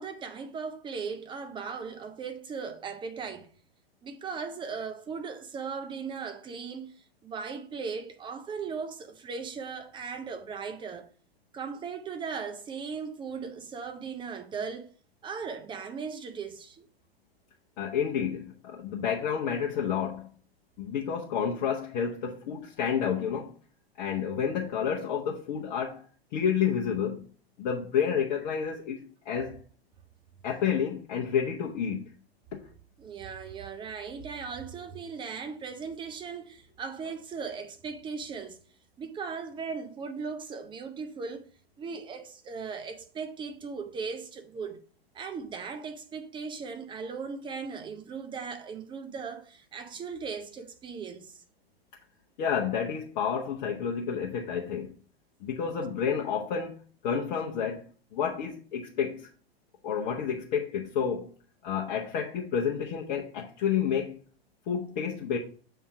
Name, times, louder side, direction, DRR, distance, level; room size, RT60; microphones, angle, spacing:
voice 1, 0.0-3.5 4.0-7.0 7.2-11.1 11.5-14.9 15.2-16.9 33.0-38.6 39.0-41.5 41.8-44.8 45.1-51.4, right 5 dB, 15° right, 0.7 m, -38 dB
voice 2, 17.8-20.3 20.8-23.5 24.0-26.0 26.3-27.2 27.6-29.6 30.4-32.0 32.5-32.6 52.4-54.9 55.4-56.7 57.0-57.9 58.1-59.3 59.8-61.3 61.6-64.2 64.7-65.4, left 7 dB, 40° left, 0.9 m, -30 dB
7.0 x 3.6 x 4.7 m
figure-of-eight pair, 100°, 31 cm